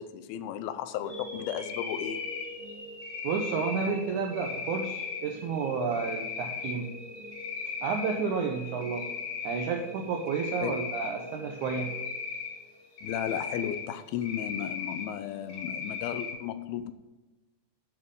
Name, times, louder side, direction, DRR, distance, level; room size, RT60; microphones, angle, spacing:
voice 1, 0.0-2.3 10.6-10.8 13.0-16.9, left 10 dB, 80° left, 11 dB, 2.4 m, -34 dB
sound 1, 1.0-13.1, left 2 dB, 20° left, 1.4 m, -44 dB
Cricket, 1.6-2.5 3.0-3.9 4.3-5.2 5.9-6.7 7.2-8.1 8.5-9.7 10.3-11.1 11.6-12.5 13.0-13.8 14.2-15.0 15.5-16.3, left 6 dB, 40° left, 2.5 m, -37 dB
voice 2, 3.2-6.9 7.8-9.1 9.4-11.9, right 5 dB, 85° right, 3 dB, 1.7 m, -31 dB
12.5 x 8.6 x 3.8 m, 1.1 s
omnidirectional pair, 4.6 m